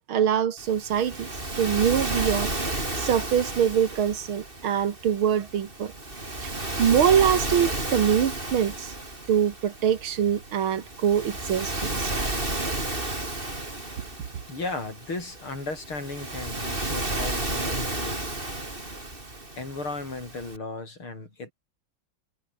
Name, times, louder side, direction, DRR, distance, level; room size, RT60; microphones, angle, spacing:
voice 1, 0.1-1.3 1.6-2.5 3.0-5.9 6.4-8.9 9.3-12.1, right 9 dB, 80° right, 2.4 m, -24 dB
Waves surf, 0.6-20.6, right 2 dB, 25° right, 4.5 m, -32 dB
voice 2, 14.5-18.3 19.6-21.5, left 3 dB, 90° left, 7.8 m, -35 dB
omnidirectional pair, 2.3 m